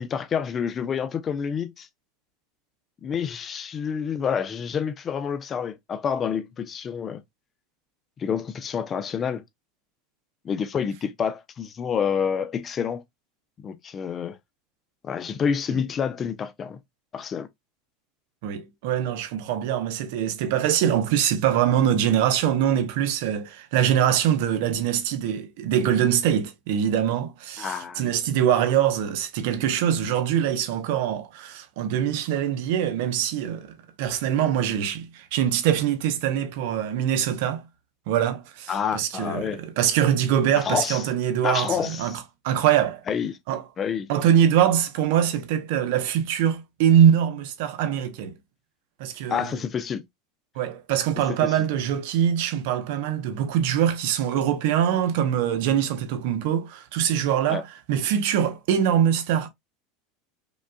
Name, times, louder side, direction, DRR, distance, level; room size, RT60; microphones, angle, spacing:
voice 1, 0.0-1.9 3.0-7.2 8.2-9.4 10.4-13.0 13.6-14.4 15.0-16.8 17.1-17.5 27.6-28.2 38.7-39.6 40.5-41.0 41.4-42.2 43.1-43.3 43.8-44.1 49.3-50.0 51.4-51.5 57.5-57.6, left 7 dB, 30° left, 0.6 m, -28 dB
voice 2, 18.4-37.6 38.1-43.0 43.5-43.6 44.1-48.4 49.0-49.6 50.5-59.5, right 9 dB, 70° right, 0.8 m, -23 dB
5.2 x 2.4 x 2.2 m
supercardioid pair, 110°, 0 cm